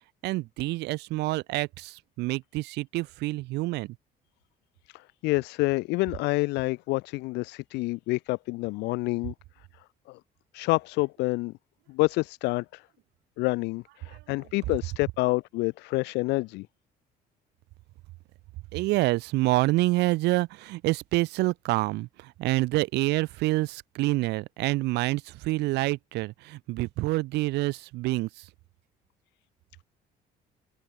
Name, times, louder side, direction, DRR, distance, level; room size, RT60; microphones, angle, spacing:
voice 1, 0.2-4.0 14.1-14.2 18.7-28.5, right 20 dB, 85° right, 1.0 m, -27 dB
voice 2, 4.9-9.3 10.1-10.2 10.5-11.5 11.9-12.8 13.4-16.7, left 22 dB, 90° left, 0.6 m, -28 dB
cardioid pair, 110°, 17 cm